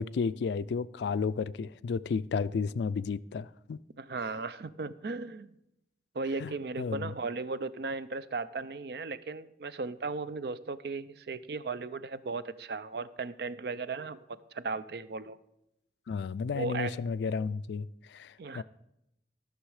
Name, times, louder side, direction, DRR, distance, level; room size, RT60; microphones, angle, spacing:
voice 1, 0.0-3.8 6.4-7.1 16.1-18.6, left 5 dB, 75° left, 0.3 m, -33 dB
voice 2, 4.0-5.5 6.1-15.4 16.5-17.0 18.4-18.6, right 4 dB, 60° right, 0.5 m, -36 dB
13.5 x 6.2 x 4.9 m
head